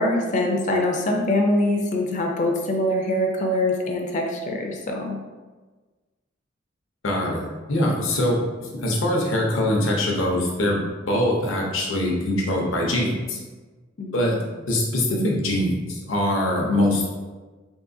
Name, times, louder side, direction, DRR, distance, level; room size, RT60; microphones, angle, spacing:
voice 1, 0.0-5.2 14.0-14.5, left 1 dB, 40° left, 2 dB, 0.4 m, -24 dB
voice 2, 7.0-13.4 14.1-14.4 14.7-17.1, left 1 dB, 85° left, -1 dB, 0.7 m, -23 dB
3.7 x 2.5 x 2.6 m, 1.3 s
head